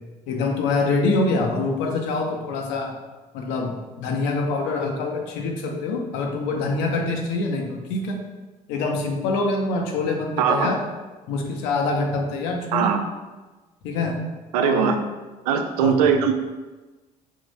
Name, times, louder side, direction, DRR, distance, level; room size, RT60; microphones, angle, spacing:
voice 1, 0.3-2.9 3.3-8.2 8.7-10.8 11.3-12.9 13.8-14.2 14.6-14.9 15.8-16.2, left 3 dB, 65° left, 2 dB, 0.6 m, -25 dB
voice 2, 10.4-10.7 12.7-13.0 14.5-15.0 15.5-16.3, right 7 dB, 75° right, 6 dB, 0.4 m, -20 dB
3.5 x 2.5 x 4.0 m, 1.2 s
figure-of-eight pair, 50°, 20 cm